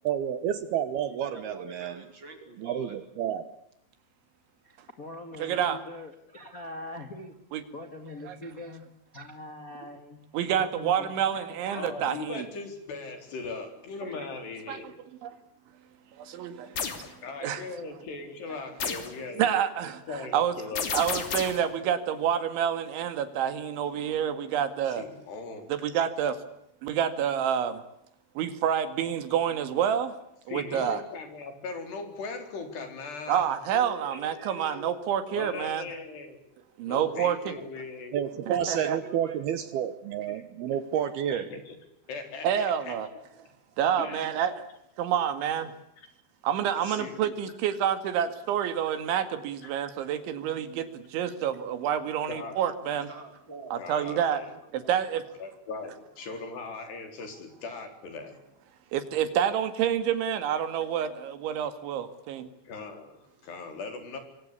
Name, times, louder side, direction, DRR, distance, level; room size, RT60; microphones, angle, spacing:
voice 1, 0.0-2.0 2.6-3.5 38.1-41.5, right 9 dB, 70° right, 2.9 m, -30 dB
voice 2, 1.0-3.0 33.7-35.0 38.3-39.4 53.0-54.2, right 2 dB, 25° right, 5.4 m, -45 dB
voice 3, 4.6-7.3 7.7-8.8 9.1-10.2 10.6-12.1, left 2 dB, 30° left, 1.8 m, -43 dB
voice 4, 5.4-5.8 7.5-7.6 8.3-8.4 10.3-12.5 14.7-14.9 15.2-15.4 16.2-16.8 17.4-17.6 19.4-20.5 20.9-25.1 25.7-26.4 26.8-27.8 28.4-30.1 30.5-31.0 33.3-35.9 36.8-37.5 38.5-39.0 42.4-43.1 43.8-44.6 45.0-45.7 46.4-53.1 53.7-54.4 54.7-55.2 58.9-62.5, right 9 dB, 90° right, 4.5 m, -28 dB
voice 5, 11.7-14.9 17.2-19.5 20.1-21.1 24.9-25.8 30.5-33.5 35.3-36.4 36.9-38.2 40.3-40.4 41.3-41.8 42.1-42.9 44.0-44.3 46.0-46.1 46.8-47.1 49.6-49.7 52.2-52.7 53.8-54.5 55.4-58.4 62.7-64.2, left 4 dB, 65° left, 6.3 m, -39 dB
sound 1, 16.8-17.1 18.8-19.2 20.8-21.7, left 6 dB, 50° left, 4.1 m, -31 dB
26.0 x 24.5 x 8.5 m
omnidirectional pair, 5.2 m